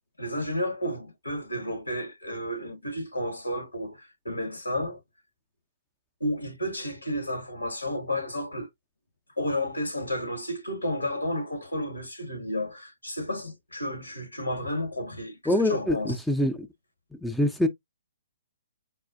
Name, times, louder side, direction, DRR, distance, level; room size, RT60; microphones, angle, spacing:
voice 1, 0.2-5.0 6.2-8.7 9.4-16.1, left 1 dB, 85° left, 1.2 m, -32 dB
voice 2, 15.5-16.7 17.2-17.7, left 1 dB, ahead, 0.4 m, -25 dB
4.1 x 2.2 x 2.4 m
figure-of-eight pair, 130°, 0 cm